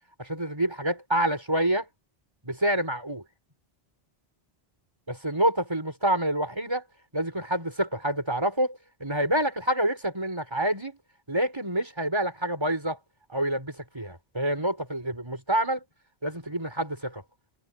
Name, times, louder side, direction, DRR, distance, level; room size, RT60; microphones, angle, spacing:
voice 1, 0.2-1.9 2.4-3.2 5.1-6.8 7.1-11.0 11.3-13.0 13.3-15.8 16.2-17.2, right 1 dB, 25° right, 5.0 m, -27 dB
omnidirectional pair, 1.0 m